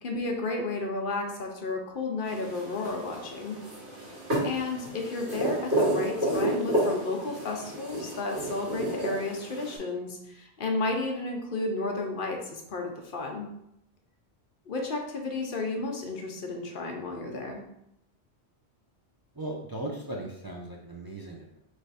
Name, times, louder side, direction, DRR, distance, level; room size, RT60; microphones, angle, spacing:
voice 1, 0.0-3.6 4.4-13.5 14.7-17.6, left 3 dB, 55° left, 2 dB, 0.8 m, -32 dB
sound 1, 2.2-9.8, right 1 dB, 85° right, 2.2 m, -31 dB
voice 2, 19.4-21.6, right 1 dB, 40° right, -2 dB, 0.3 m, -38 dB
3.3 x 3.2 x 4.0 m, 0.80 s
omnidirectional pair, 1.1 m